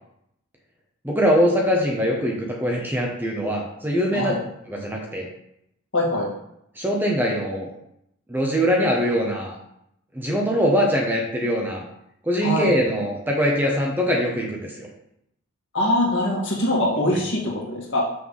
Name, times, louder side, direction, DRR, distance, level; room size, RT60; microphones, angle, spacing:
voice 1, 1.0-4.3 4.7-5.3 6.8-7.7 8.3-9.6 10.1-11.8 12.2-14.9 17.1-17.2, equal, 10° right, -1 dB, 0.8 m, -22 dB
voice 2, 5.9-6.2 12.4-12.7 15.7-18.0, left 1 dB, 60° left, -4 dB, 1.9 m, -22 dB
6.1 x 3.3 x 5.5 m, 0.78 s
head